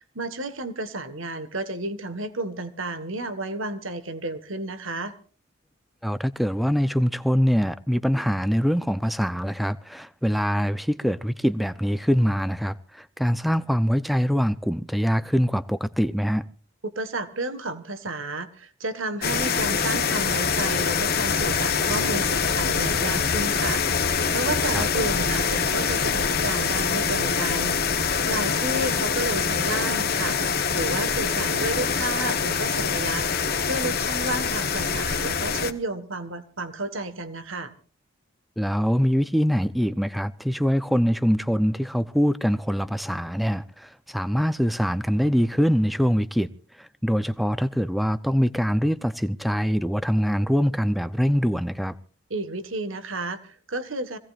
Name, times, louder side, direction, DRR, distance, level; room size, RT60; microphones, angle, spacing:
voice 1, 0.1-5.1 16.8-33.3 33.6-37.7 52.3-54.2, right 2 dB, 75° right, 1.5 m, -32 dB
voice 2, 6.0-16.4 24.7-24.9 38.6-46.5 46.8-52.0, equal, ahead, 0.6 m, -23 dB
sound 1, 19.2-35.7, left 6 dB, 45° left, 1.1 m, -24 dB
25.5 x 17.0 x 2.5 m
head